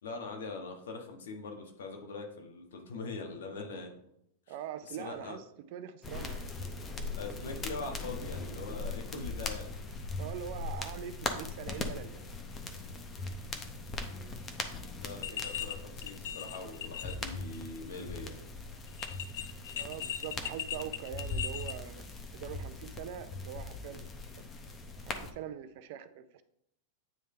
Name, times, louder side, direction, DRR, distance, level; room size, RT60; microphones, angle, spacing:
voice 1, 0.0-3.9 4.5-4.6 4.9-5.4 7.1-9.7 15.0-18.4, left 3 dB, 90° left, 1.3 m, -42 dB
voice 2, 4.5-5.4 5.7-6.5 10.2-12.2 15.3-15.5 19.7-22.0 22.3-24.1 24.4-24.5 25.0-26.4, right 9 dB, 55° right, 0.5 m, -43 dB
sound 1, 6.0-25.3, left 3 dB, 20° left, 0.7 m, -40 dB
sound 2, 15.2-15.7 16.0-17.2 17.5-17.6 18.9-21.7, left 9 dB, 70° left, 0.5 m, -38 dB
9.1 x 3.4 x 3.3 m
supercardioid pair, 140°, 0 cm